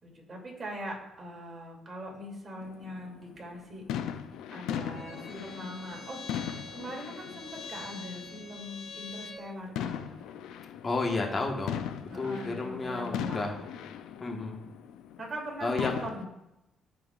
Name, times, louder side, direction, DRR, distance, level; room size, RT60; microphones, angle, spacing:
voice 1, 0.0-3.9 4.5-10.2 12.1-13.5 15.2-16.3, equal, 35° right, -2 dB, 2.7 m, -41 dB
sound 1, 2.6-8.6 8.9-9.2 9.8-15.4 15.8-16.2, left 9 dB, 90° left, 0.4 m, -39 dB
Bowed string instrument, 4.9-9.5, left 3 dB, 55° left, 2.4 m, -45 dB
voice 2, 10.8-13.6 14.2-14.6 15.6-15.9, left 3 dB, 35° left, 2 dB, 1.4 m, -32 dB
13.5 x 4.8 x 2.5 m, 0.89 s
cardioid pair, 90°, 0 cm